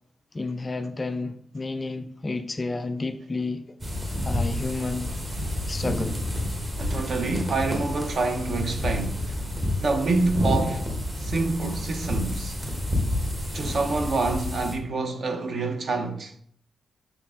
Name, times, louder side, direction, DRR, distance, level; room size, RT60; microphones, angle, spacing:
voice 1, 0.3-3.6 4.3-5.1 5.7-6.2, left 3 dB, 20° left, 0.3 m, -30 dB
sound 1, 3.8-14.7, left 1 dB, 25° right, 1.2 m, -29 dB
voice 2, 6.8-9.4 9.8-10.9 11.2-12.6 13.5-16.3, right 3 dB, 45° right, 0.7 m, -27 dB
5.8 x 4.6 x 3.7 m
wide cardioid pair, 165°, 0 cm